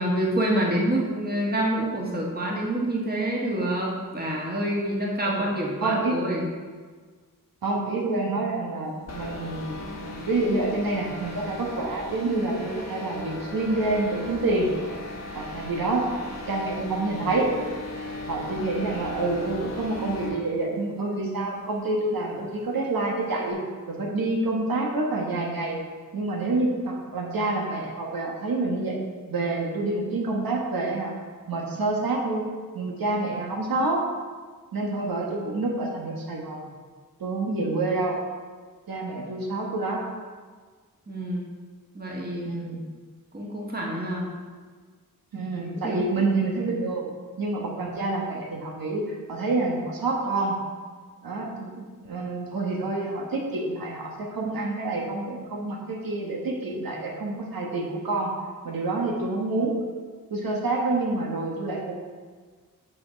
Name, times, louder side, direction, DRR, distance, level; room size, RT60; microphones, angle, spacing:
voice 1, 0.0-6.4 41.1-41.4 41.9-42.5 43.3-44.4 45.6-46.0, right 1 dB, 25° right, -3 dB, 1.7 m, -27 dB
voice 2, 5.8-6.2 7.6-14.7 15.3-16.1 16.5-17.5 18.3-23.6 23.9-25.8 26.1-29.0 29.3-31.1 31.5-32.5 32.7-34.0 34.7-36.7 37.2-38.2 38.9-40.0 42.4-42.8 45.3-47.0 47.4-50.6 51.2-58.3 58.6-59.8 60.3-62.0, right 2 dB, 80° right, -2 dB, 1.3 m, -27 dB
sound 1, 9.1-20.5, left 2 dB, 50° left, 1.3 m, -38 dB
6.7 x 6.0 x 5.1 m, 1.5 s
wide cardioid pair, 90°, 34 cm